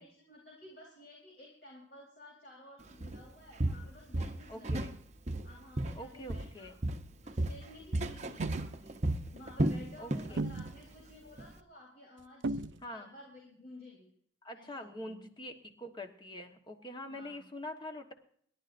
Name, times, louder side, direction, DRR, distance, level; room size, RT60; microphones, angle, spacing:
voice 1, 0.0-4.9 5.4-6.7 7.2-9.0 9.3-14.1 14.5-15.2 17.1-17.4, left 1 dB, 50° left, -2 dB, 4.0 m, -54 dB
Walk footsteps, 3.0-3.2 3.6-5.0 5.3-6.6 6.8-10.4 10.7-10.9 11.4-11.5, right 1 dB, 35° right, 0.8 m, -34 dB
voice 2, 4.5-4.9 5.9-6.8 10.0-10.4 12.8-13.1 14.4-18.1, left 1 dB, 25° left, 5 dB, 1.4 m, -44 dB
sound 1, 8.2-8.7 10.2-10.8 12.4-12.8, right 2 dB, 65° right, 0.5 m, -36 dB
28.5 x 11.5 x 2.6 m, 0.62 s
head